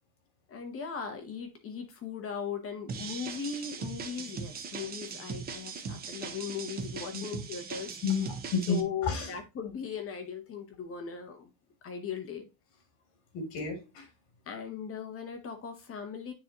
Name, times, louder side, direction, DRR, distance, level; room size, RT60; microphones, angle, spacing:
voice 1, 0.5-8.0 8.7-11.5 11.8-12.5 14.5-16.3, left 7 dB, 25° left, 0.9 m, -38 dB
sound 1, 2.9-8.8, right 5 dB, 20° right, 0.4 m, -40 dB
voice 2, 8.0-9.3 13.3-14.1, left 5 dB, 60° left, 3.0 m, -31 dB
9.1 x 3.8 x 2.8 m
cardioid pair, 175°, 49 cm